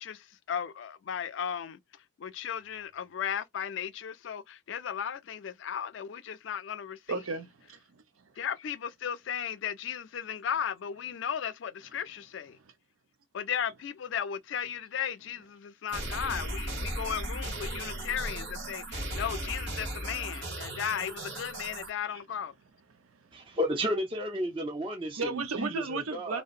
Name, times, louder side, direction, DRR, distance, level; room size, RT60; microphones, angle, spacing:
voice 1, 0.0-1.8 2.2-7.2 8.4-12.6 13.3-22.5, left 8 dB, 65° left, 0.3 m, -35 dB
voice 2, 7.1-8.4 12.5-12.6 20.3-20.4 22.1-22.2 22.9-23.6 25.2-26.4, right 3 dB, 90° right, 0.6 m, -36 dB
sound 1, 15.9-21.9, right 1 dB, 55° right, 1.5 m, -36 dB
voice 3, 23.3-26.4, equal, 25° right, 0.5 m, -32 dB
2.7 x 2.0 x 2.4 m
head